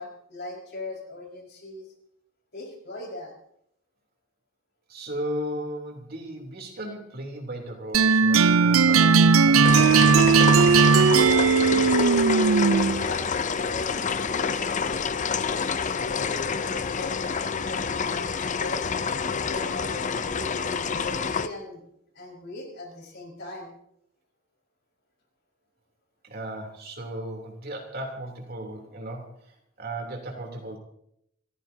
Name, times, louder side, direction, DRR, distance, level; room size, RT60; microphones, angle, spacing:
voice 1, 0.0-1.9 2.5-3.3 11.2-14.7 15.8-18.9 19.2-21.8 22.1-23.7, left 2 dB, 55° left, 0 dB, 5.1 m, -40 dB
voice 2, 4.9-10.3 26.2-30.8, right 1 dB, 50° right, 2 dB, 3.3 m, -36 dB
sound 1, 7.9-13.1, right 5 dB, 90° right, 0.5 m, -18 dB
sound 2, 9.6-21.5, left 6 dB, 35° left, 0.6 m, -28 dB
27.0 x 15.0 x 2.8 m, 0.74 s
head